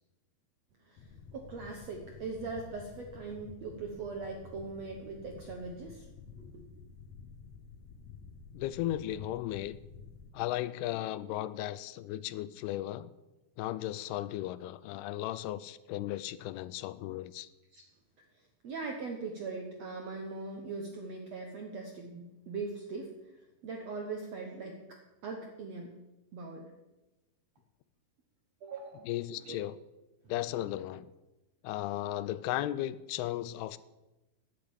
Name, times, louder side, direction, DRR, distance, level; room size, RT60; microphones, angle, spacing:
voice 1, 0.8-6.1 6.3-6.6 17.7-17.8 18.3-25.9 26.3-26.7 28.6-29.6, right 4 dB, 65° right, 2 dB, 1.7 m, -41 dB
sound 1, 1.0-10.3, left 5 dB, 65° left, 2.0 m, -51 dB
voice 2, 8.5-9.8 10.3-13.1 13.6-17.5 29.0-29.8 30.3-31.1 31.6-33.8, left 14 dB, 85° left, 15 dB, 2.5 m, -35 dB
10.5 x 8.4 x 8.9 m, 1.0 s
omnidirectional pair, 4.6 m